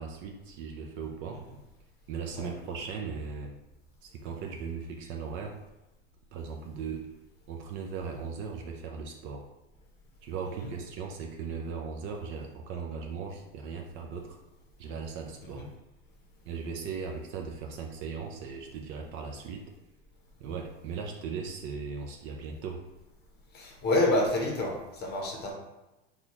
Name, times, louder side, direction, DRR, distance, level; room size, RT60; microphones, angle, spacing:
voice 1, 0.0-1.4 2.1-3.5 4.0-5.5 6.3-7.0 7.5-9.4 10.2-14.4 14.8-15.7 16.5-19.6 20.4-22.8, right 5 dB, 40° right, 2 dB, 0.4 m, -38 dB
voice 2, 23.5-25.5, left 2 dB, 30° left, 0 dB, 0.8 m, -28 dB
4.0 x 2.4 x 2.9 m, 1.0 s
supercardioid pair, 130°, 32 cm